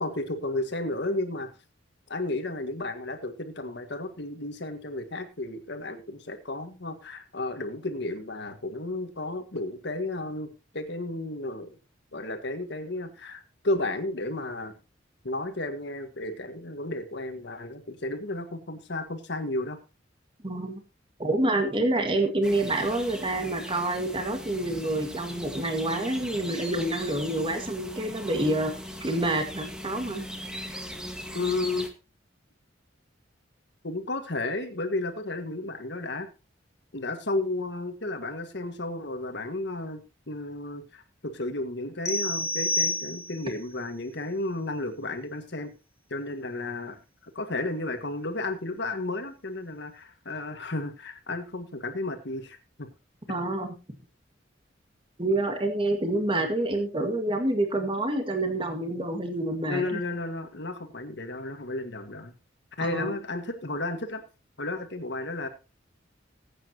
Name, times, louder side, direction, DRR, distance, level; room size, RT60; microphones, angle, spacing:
voice 1, 0.0-1.5 2.1-11.8 12.1-14.8 15.2-19.8 31.3-31.9 33.8-36.3 36.9-45.7 46.1-47.0 47.4-52.9 59.7-62.3 62.8-64.2 64.6-65.5, left 2 dB, 65° left, 7 dB, 1.8 m, -33 dB
voice 2, 20.4-20.8 21.2-28.7 29.0-30.2 53.3-53.7 55.2-59.8 62.8-63.1, right 1 dB, 30° right, 5 dB, 1.8 m, -27 dB
sound 1, 22.4-31.9, equal, 5° right, 1.6 m, -39 dB
sound 2, 42.1-43.6, left 2 dB, 15° left, 1.8 m, -29 dB
19.5 x 8.8 x 2.9 m, 0.30 s
head